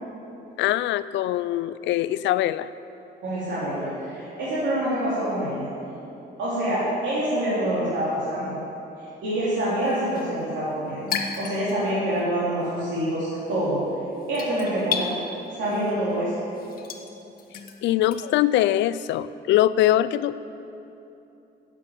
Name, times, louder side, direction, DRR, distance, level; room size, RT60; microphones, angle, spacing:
voice 1, 0.6-2.7 17.8-20.4, left 13 dB, 85° left, 16 dB, 0.4 m, -22 dB
voice 2, 3.2-5.7 6.4-8.6 9.0-11.1 11.4-13.8 14.3-15.1 15.6-16.3, right 1 dB, 90° right, -10 dB, 3.2 m, -26 dB
sound 1, 9.5-12.2 12.5-18.2, left 6 dB, 50° left, 1.0 m, -34 dB
9.8 x 7.4 x 9.0 m, 2.8 s
cardioid pair, 155°, 18 cm